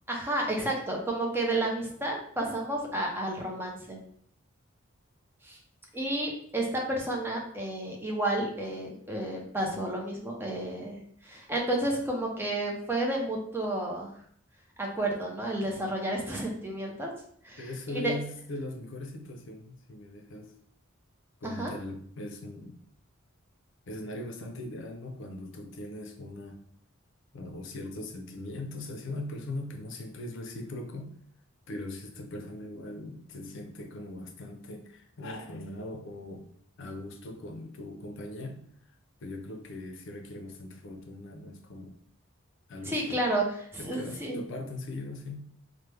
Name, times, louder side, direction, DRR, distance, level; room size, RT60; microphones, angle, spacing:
voice 1, 0.1-4.0 5.4-5.6 5.9-14.1 14.8-17.1 17.4-18.1 21.4-21.7 42.8-43.4 43.7-44.4, right 1 dB, 10° right, -1 dB, 0.6 m, -31 dB
voice 2, 17.6-20.5 21.4-22.8 23.9-26.6 27.3-31.2 31.7-36.4 36.8-38.6 39.2-42.0 42.7-43.2 43.8-45.5, left 1 dB, 65° left, 4 dB, 0.5 m, -40 dB
3.2 x 2.1 x 3.3 m, 0.63 s
head